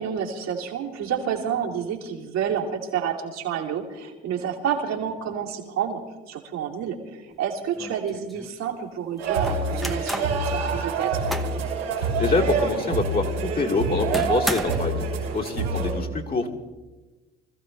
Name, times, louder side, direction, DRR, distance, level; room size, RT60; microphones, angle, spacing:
voice 1, 0.0-6.0 6.3-11.2, right 8 dB, 60° right, -2 dB, 2.8 m, -29 dB
sound 1, 7.3-7.4 7.8-8.5 9.4-10.4 10.9-11.6 12.1-12.2 12.6-12.7 14.1-15.0, equal, ahead, 1.2 m, -33 dB
sound 2, 9.2-15.9, right 3 dB, 90° right, 4.2 m, -26 dB
voice 2, 12.0-15.1 15.3-16.5, left 3 dB, 30° left, -1 dB, 2.6 m, -26 dB
25.5 x 15.0 x 3.3 m, 1.2 s
hypercardioid pair, 60°, 30 cm